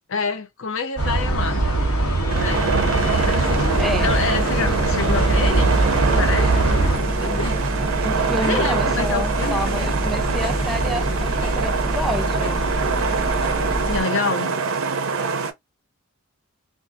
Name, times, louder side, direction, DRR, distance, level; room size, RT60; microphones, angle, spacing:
voice 1, 0.1-1.6 2.3-2.7 3.1-5.8 6.1-7.6 8.0-8.1 8.4-9.9 13.9-14.6, left 5 dB, 60° left, 0.6 m, -27 dB
sound 1, 1.0-7.0, right 2 dB, 80° left, 1.4 m, -21 dB
sound 2, 2.3-15.5, right 5 dB, 65° right, 0.5 m, -25 dB
sound 3, 3.0-14.0, right 1 dB, 25° left, 0.7 m, -26 dB
voice 2, 3.8-4.1 8.0-12.7, equal, ahead, 0.4 m, -29 dB
2.7 x 2.4 x 2.4 m
head